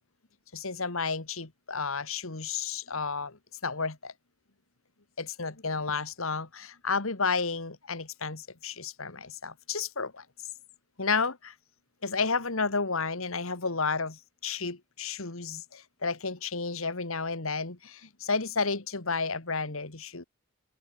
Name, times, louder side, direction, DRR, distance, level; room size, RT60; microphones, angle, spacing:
voice 1, 0.5-3.4 3.6-4.1 5.2-10.2 11.0-11.5 12.0-20.2, left 4 dB, 70° left, 2.1 m, -32 dB
head